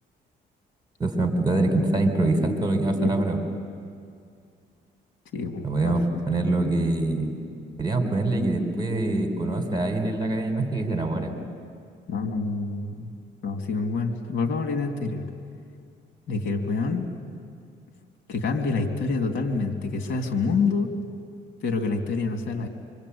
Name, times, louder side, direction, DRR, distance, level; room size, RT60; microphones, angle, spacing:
voice 1, 1.0-3.4 5.6-7.3 7.8-11.3, right 2 dB, 20° right, 5 dB, 4.3 m, -24 dB
voice 2, 5.3-6.0 12.1-13.1 13.4-15.2 16.3-17.1 18.3-20.9 21.6-22.7, left 4 dB, 70° left, 4 dB, 2.8 m, -27 dB
26.0 x 25.0 x 8.7 m, 2.3 s
cardioid pair, 90°, 20 cm